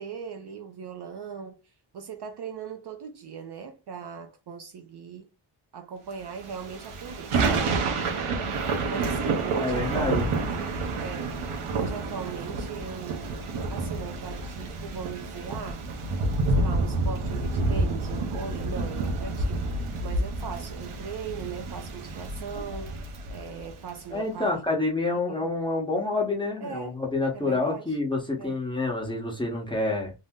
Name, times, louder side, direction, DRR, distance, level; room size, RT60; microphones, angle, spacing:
voice 1, 0.0-1.6 1.9-5.3 5.7-8.4 8.9-10.3 11.0-11.4 11.7-13.4 13.7-15.9 16.5-19.7 20.0-23.0 23.3-24.7 25.3-25.5 26.6-27.0 27.3-28.0 28.4-28.6, right 6 dB, 55° right, 0.5 m, -39 dB
Thunder / Rain, 6.4-23.9, right 3 dB, 80° right, 0.8 m, -29 dB
voice 2, 9.5-10.3 24.1-30.1, left 2 dB, 10° left, 0.8 m, -28 dB
2.7 x 2.0 x 3.5 m
wide cardioid pair, 125°, 50 cm